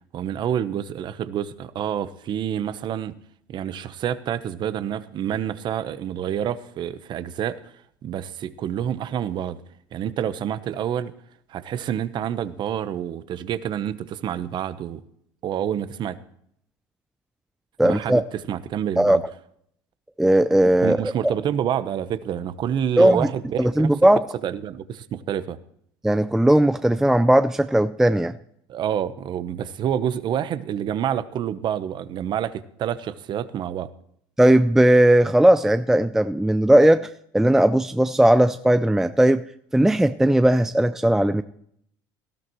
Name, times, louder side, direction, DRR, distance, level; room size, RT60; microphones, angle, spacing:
voice 1, 0.1-3.1 3.5-7.7 8.0-9.6 9.9-11.1 11.5-15.0 15.4-16.2 17.8-18.2 18.5-19.2 20.8-23.9 24.4-25.6 28.7-33.9, right 9 dB, 50° right, 14 dB, 0.9 m, -28 dB
voice 2, 17.8-18.2 19.0-19.2 20.2-21.0 23.0-23.3 23.6-24.2 26.0-28.3 34.4-39.4 39.7-41.4, right 1 dB, 5° right, 11 dB, 0.4 m, -17 dB
18.5 x 13.0 x 3.1 m, 0.70 s
supercardioid pair, 110°, 10 cm